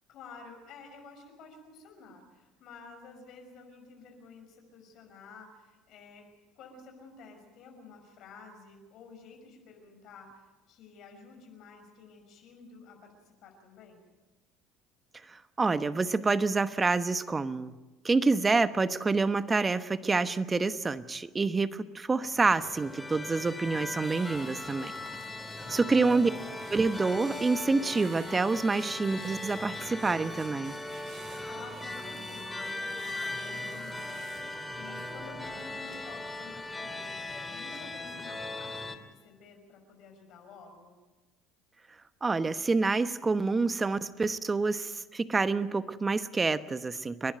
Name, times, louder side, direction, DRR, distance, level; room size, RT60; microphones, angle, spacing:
voice 1, 0.1-14.0 25.6-26.1 31.4-37.2 37.5-41.0, left 4 dB, 60° left, 4 dB, 5.9 m, -51 dB
voice 2, 15.3-17.8 18.0-24.9 25.7-26.3 26.7-30.8 42.2-47.3, right 3 dB, 25° right, 13 dB, 1.1 m, -27 dB
sound 1, 22.2-39.0, left 2 dB, 10° left, 2.5 m, -39 dB
sound 2, 24.0-37.4 37.7-38.0, right 5 dB, 55° right, 4.8 m, -53 dB
30.0 x 11.5 x 9.1 m, 1.2 s
hypercardioid pair, 80°, 0 cm